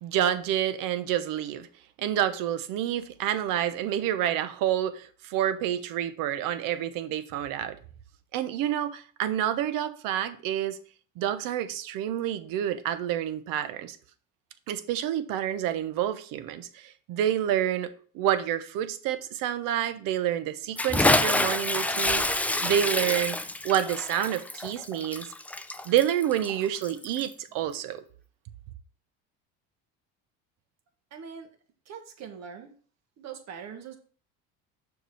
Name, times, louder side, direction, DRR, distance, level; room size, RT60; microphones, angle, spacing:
voice 1, 0.0-1.7 2.0-7.8 8.3-10.8 11.2-14.0 14.7-17.9 18.1-23.4 23.6-25.3 25.8-28.0, right 11 dB, 70° right, 1.0 m, -28 dB
Bathtub (filling or washing) / Splash splatter, 20.8-27.3, left 2 dB, 5° left, 0.4 m, -27 dB
voice 2, 31.1-31.5 31.8-32.7 33.2-34.0, right 7 dB, 50° right, 1.6 m, -42 dB
6.6 x 5.0 x 4.8 m
supercardioid pair, 100°, 35 cm